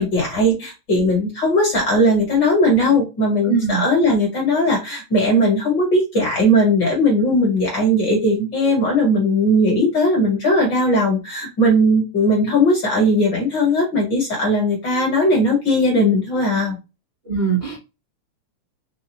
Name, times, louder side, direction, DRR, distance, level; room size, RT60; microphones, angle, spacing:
voice 1, 0.0-16.8, equal, 45° left, -1 dB, 1.6 m, -18 dB
voice 2, 3.5-3.8 17.3-17.8, right 6 dB, 75° right, -5 dB, 0.5 m, -21 dB
4.6 x 2.3 x 3.0 m, 0.27 s
omnidirectional pair, 3.4 m